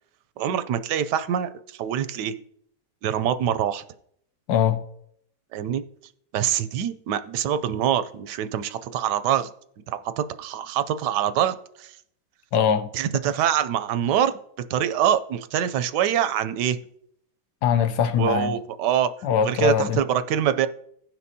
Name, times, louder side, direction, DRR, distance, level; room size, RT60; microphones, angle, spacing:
voice 1, 0.4-2.3 3.0-3.8 5.5-5.8 6.3-9.5 9.9-12.0 12.9-14.4 14.7-16.8 18.2-19.1 19.4-20.7, right 9 dB, 85° right, 1.2 m, -24 dB
voice 2, 4.5-4.8 12.5-12.9 17.6-18.6 19.2-20.0, left 8 dB, 80° left, 1.3 m, -22 dB
16.0 x 6.0 x 2.7 m
omnidirectional pair, 1.8 m